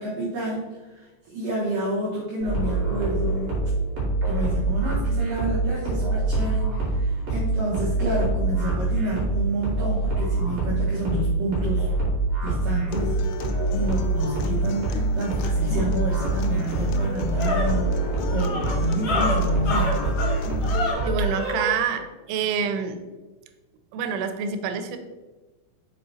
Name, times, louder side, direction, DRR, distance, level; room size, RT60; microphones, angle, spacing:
voice 1, 0.0-3.6 4.2-11.9 12.4-20.0, right 1 dB, 65° right, -5 dB, 2.2 m, -29 dB
sound 1, 2.4-21.2, right 2 dB, 40° right, 2.7 m, -25 dB
Acoustic guitar, 12.9-20.9, left 5 dB, 80° left, 2.8 m, -35 dB
sound 2, 16.7-21.7, left 2 dB, 50° left, 1.6 m, -29 dB
voice 2, 21.0-23.0 23.9-25.0, right 7 dB, 90° right, 8 dB, 3.1 m, -27 dB
6.9 x 5.1 x 4.2 m, 1.2 s
omnidirectional pair, 5.4 m